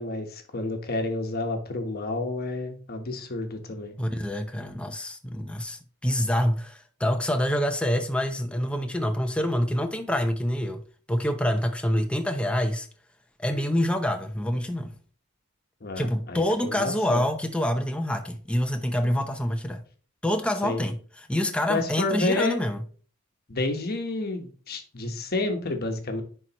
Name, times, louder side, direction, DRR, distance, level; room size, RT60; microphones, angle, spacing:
voice 1, 0.0-3.9 15.8-17.2 20.6-20.8 21.7-22.6 23.5-26.2, left 2 dB, 45° left, 1.1 m, -30 dB
voice 2, 4.0-10.8 11.1-12.9 13.4-14.9 16.0-19.8 20.2-21.0 21.3-22.8, equal, 5° left, 0.7 m, -26 dB
10.0 x 4.6 x 3.0 m
head